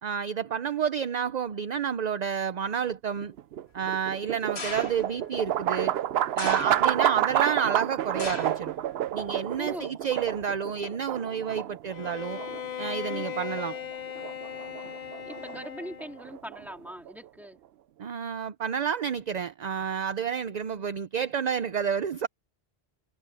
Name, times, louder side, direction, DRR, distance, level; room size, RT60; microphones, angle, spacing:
voice 1, 0.0-3.3 3.7-5.9 6.4-8.7 9.1-12.4 12.8-13.8 18.0-22.3, right 7 dB, 50° right, 0.6 m, -30 dB
sound 1, 3.2-17.3, right 11 dB, 75° right, 0.8 m, -30 dB
sound 2, 4.6-5.2 6.4-7.2 8.2-8.7 9.1-9.6 10.4-10.5, left 3 dB, 85° left, 2.3 m, -38 dB
voice 2, 6.5-6.8 9.6-9.9 13.1-13.4 14.9-17.6, equal, ahead, 2.9 m, -41 dB
Bowed string instrument, 11.9-16.3, left 9 dB, 50° left, 0.7 m, -38 dB
omnidirectional pair, 1.0 m